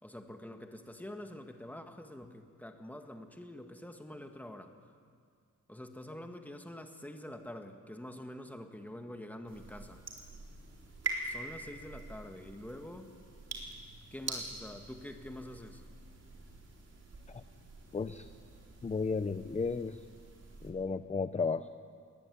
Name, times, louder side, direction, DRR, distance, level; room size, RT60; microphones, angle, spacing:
voice 1, 0.0-4.8 5.7-10.0 11.2-13.1 14.1-15.8, left 1 dB, 5° left, 5 dB, 1.8 m, -46 dB
sound 1, 9.5-20.7, right 3 dB, 50° right, 4.4 m, -45 dB
voice 2, 17.9-18.3 18.8-20.0 20.6-21.7, left 4 dB, 20° left, 11 dB, 0.6 m, -34 dB
21.0 x 20.5 x 9.4 m, 2.1 s
wide cardioid pair, 140°, 31 cm